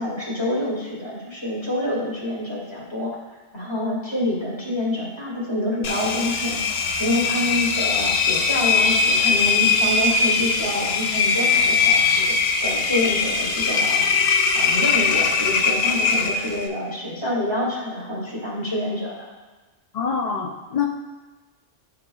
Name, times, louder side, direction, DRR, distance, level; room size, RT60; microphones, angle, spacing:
voice 1, 0.0-3.1 3.5-6.6 7.0-12.3 12.6-14.1 14.5-19.3, left 1 dB, 25° left, -5 dB, 1.9 m, -27 dB
Engine, 5.8-16.7, left 5 dB, 75° left, 0.9 m, -21 dB
voice 2, 19.9-20.9, left 6 dB, 60° left, 2 dB, 0.4 m, -25 dB
11.0 x 4.8 x 2.3 m, 1.2 s
omnidirectional pair, 1.1 m